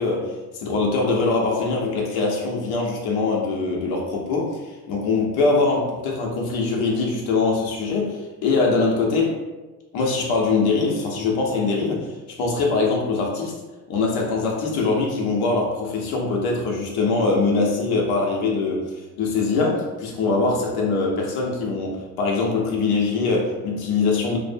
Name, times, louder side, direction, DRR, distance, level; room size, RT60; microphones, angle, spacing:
voice 1, 0.0-9.4 9.9-12.1 12.4-13.6 13.9-18.9 19.2-24.4, left 3 dB, 60° left, -1 dB, 0.8 m, -22 dB
2.5 x 2.0 x 2.6 m, 1.2 s
supercardioid pair, 105°, 42 cm